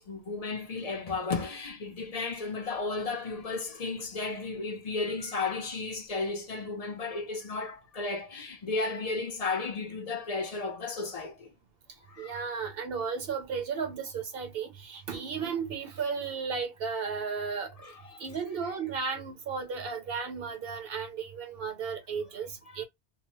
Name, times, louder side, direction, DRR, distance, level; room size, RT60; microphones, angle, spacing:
voice 1, 0.0-11.5 12.1-12.5 17.8-18.2 22.7-22.8, left 3 dB, 45° left, 0.5 m, -34 dB
voice 2, 12.2-17.9 18.2-22.8, right 5 dB, 65° right, 1.0 m, -34 dB
2.8 x 2.0 x 2.9 m
omnidirectional pair, 1.1 m